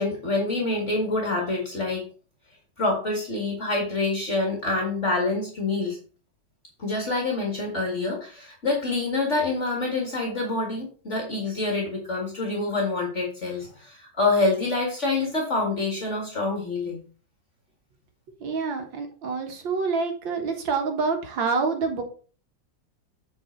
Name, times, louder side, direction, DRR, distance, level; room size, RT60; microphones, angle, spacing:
voice 1, 0.0-2.0 2.8-6.0 6.8-17.0, left 3 dB, 40° left, -1 dB, 2.1 m, -26 dB
voice 2, 18.4-22.0, right 4 dB, 85° right, 4 dB, 2.1 m, -27 dB
7.8 x 4.8 x 4.5 m, 0.40 s
omnidirectional pair, 2.0 m